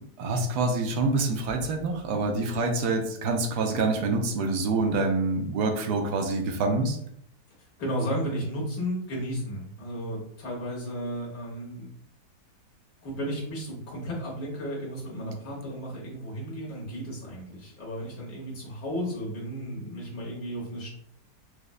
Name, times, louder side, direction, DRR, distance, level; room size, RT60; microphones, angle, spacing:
voice 1, 0.2-7.0, right 3 dB, 80° right, 4 dB, 1.1 m, -26 dB
voice 2, 7.8-11.9 13.0-20.9, equal, 85° left, -4 dB, 1.8 m, -34 dB
4.9 x 2.1 x 2.3 m, 0.70 s
omnidirectional pair, 1.7 m